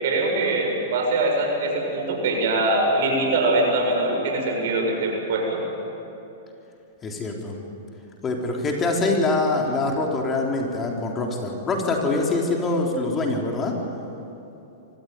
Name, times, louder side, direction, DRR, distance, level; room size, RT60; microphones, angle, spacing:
voice 1, 0.0-5.6, right 2 dB, 65° right, 1 dB, 6.9 m, -23 dB
voice 2, 7.0-7.6 8.2-13.7, left 2 dB, 25° left, 0 dB, 3.6 m, -24 dB
24.5 x 16.0 x 9.5 m, 2.9 s
hypercardioid pair, 115°, 0 cm